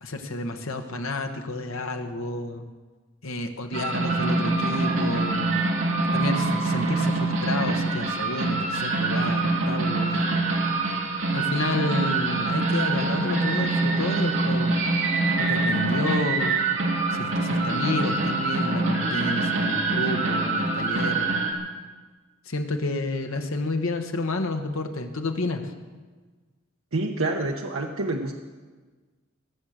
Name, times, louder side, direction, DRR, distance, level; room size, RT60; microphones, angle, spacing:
voice 1, 0.0-2.6 3.2-5.5 6.1-10.4 11.3-14.7 15.4-16.6 17.1-21.4 22.5-25.6, left 2 dB, 85° left, 5 dB, 1.4 m, -30 dB
sound 1, 3.7-21.5, right 3 dB, 60° right, 2.4 m, -25 dB
Wind instrument woodwind instrument, 10.4-14.6, equal, 25° right, 3.4 m, -40 dB
voice 2, 26.9-28.3, right 2 dB, 80° right, 1 dB, 1.0 m, -27 dB
21.5 x 7.6 x 6.6 m, 1.4 s
head